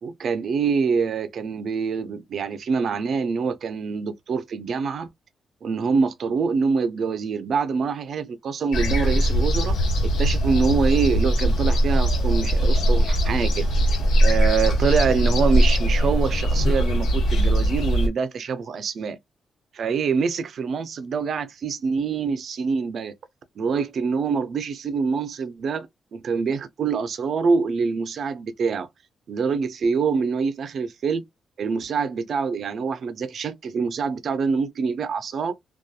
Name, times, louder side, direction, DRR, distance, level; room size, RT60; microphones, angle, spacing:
voice 1, 0.0-5.1 5.6-9.9 10.2-13.7 14.2-19.2 19.7-23.1 23.6-28.9 29.3-31.2 31.6-35.5, right 5 dB, 50° right, 0.4 m, -25 dB
sound 1, 8.7-18.1, equal, 85° left, 1.0 m, -20 dB
2.6 x 2.3 x 2.3 m
wide cardioid pair, 175°, 0 cm